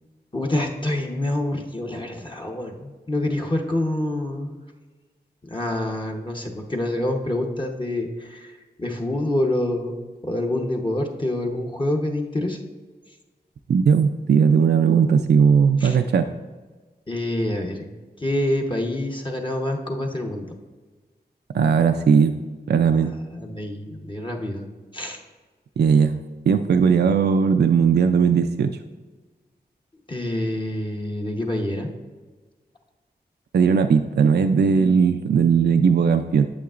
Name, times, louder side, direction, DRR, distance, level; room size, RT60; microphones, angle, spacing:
voice 1, 0.3-4.6 5.4-8.5 8.8-10.0 10.2-12.6 15.8-16.0 17.1-17.9 18.2-20.4 23.3-25.2 30.1-31.9, left 1 dB, 30° left, 0 dB, 0.9 m, -26 dB
voice 2, 13.7-16.3 21.5-22.4 22.7-23.2 25.8-26.2 26.5-28.8 33.5-36.5, right 6 dB, 70° right, 7 dB, 0.4 m, -18 dB
8.5 x 7.0 x 2.5 m, 1.3 s
cardioid pair, 50°, 18 cm